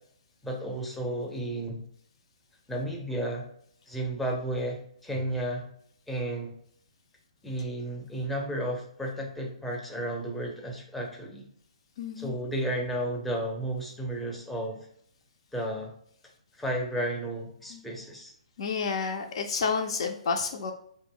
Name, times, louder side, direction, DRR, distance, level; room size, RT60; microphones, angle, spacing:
voice 1, 0.4-1.8 2.7-3.4 3.9-5.7 6.1-6.5 7.4-11.5 12.2-14.9 15.5-15.9 16.6-18.3, right 1 dB, 5° left, 0 dB, 0.6 m, -33 dB
voice 2, 12.0-12.3 17.7-17.8 18.6-20.7, left 5 dB, 55° left, 4 dB, 0.4 m, -30 dB
2.5 x 2.1 x 3.6 m, 0.65 s
figure-of-eight pair, 130°, 4 cm